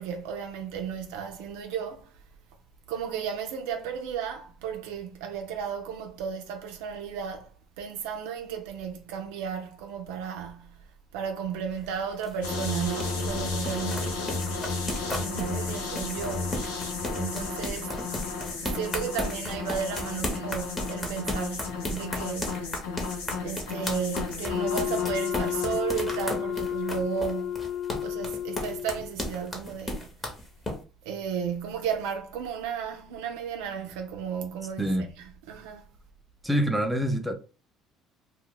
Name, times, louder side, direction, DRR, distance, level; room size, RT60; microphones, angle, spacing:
voice 1, 0.0-2.2 2.9-7.5 7.8-10.8 11.1-14.4 15.1-16.5 17.2-18.0 18.6-22.7 23.4-27.6 28.0-30.2 31.0-35.9, right 7 dB, 85° right, 0.4 m, -34 dB
sound 1, 11.7-30.8, left 1 dB, 25° left, 0.9 m, -35 dB
sound 2, 12.4-25.8, left 4 dB, 90° left, 0.6 m, -33 dB
Wind instrument woodwind instrument, 24.4-29.1, left 10 dB, 45° left, 0.4 m, -31 dB
voice 2, 36.4-37.3, equal, 5° right, 0.6 m, -25 dB
2.1 x 2.1 x 3.7 m
supercardioid pair, 75°, 0 cm